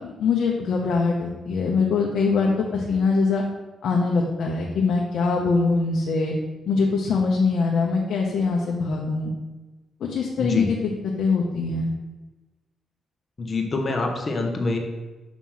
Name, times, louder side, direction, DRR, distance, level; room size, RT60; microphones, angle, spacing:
voice 1, 0.0-3.4 3.8-6.3 6.7-9.3 10.0-10.8 11.2-11.9, left 4 dB, 70° left, -1 dB, 0.7 m, -23 dB
voice 2, 10.4-10.7 13.4-14.8, left 2 dB, 30° left, 2 dB, 0.8 m, -25 dB
6.0 x 3.0 x 5.5 m, 1.2 s
cardioid pair, 145°, 0 cm